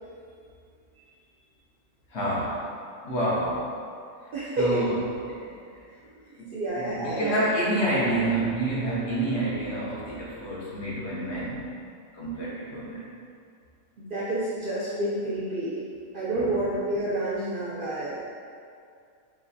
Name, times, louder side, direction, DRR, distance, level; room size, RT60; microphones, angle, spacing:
voice 1, 2.1-2.6 3.0-3.7 4.6-5.0 6.4-11.6 12.1-13.1 16.3-16.6, right 1 dB, 55° left, -7 dB, 1.0 m, -28 dB
voice 2, 4.3-4.8 6.1-7.4 14.0-15.8 16.1-18.2, right 1 dB, 65° right, -9 dB, 0.5 m, -29 dB
3.9 x 3.2 x 2.6 m, 2.3 s
omnidirectional pair, 1.5 m